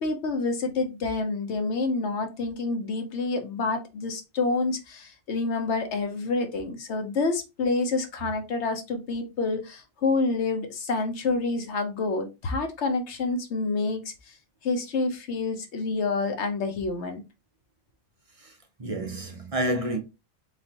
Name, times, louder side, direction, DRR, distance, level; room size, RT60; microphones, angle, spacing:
voice 1, 0.0-14.1 14.6-17.2, left 3 dB, 75° left, 1.2 m, -28 dB
voice 2, 18.8-20.0, right 1 dB, 35° right, 0.7 m, -29 dB
4.0 x 3.6 x 2.8 m
omnidirectional pair, 1.2 m